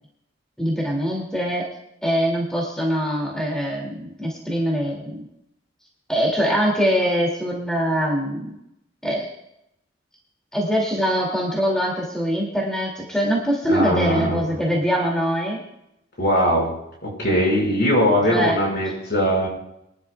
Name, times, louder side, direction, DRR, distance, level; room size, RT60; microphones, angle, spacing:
voice 1, 0.6-1.6 2.0-5.3 6.1-8.5 9.0-9.3 10.5-15.6 18.3-18.5, equal, 5° left, -3 dB, 2.6 m, -23 dB
voice 2, 13.7-14.4 16.2-16.7 17.0-19.5, equal, 60° left, -2 dB, 5.8 m, -20 dB
23.0 x 12.0 x 2.4 m, 0.80 s
head